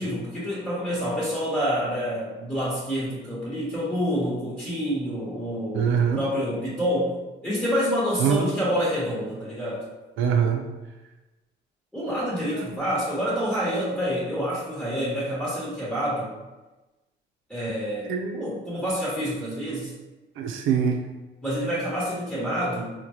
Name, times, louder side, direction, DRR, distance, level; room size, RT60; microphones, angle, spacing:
voice 1, 0.0-7.1 7.4-9.8 11.9-16.3 17.5-19.9 21.4-22.9, equal, 5° left, -8 dB, 1.1 m, -27 dB
voice 2, 5.7-6.2 8.2-8.5 10.2-10.6 12.5-12.6 18.1-18.5 20.4-21.0, right 7 dB, 85° right, 4 dB, 0.5 m, -23 dB
3.9 x 2.1 x 3.0 m, 1.1 s
cardioid pair, 90°, 20 cm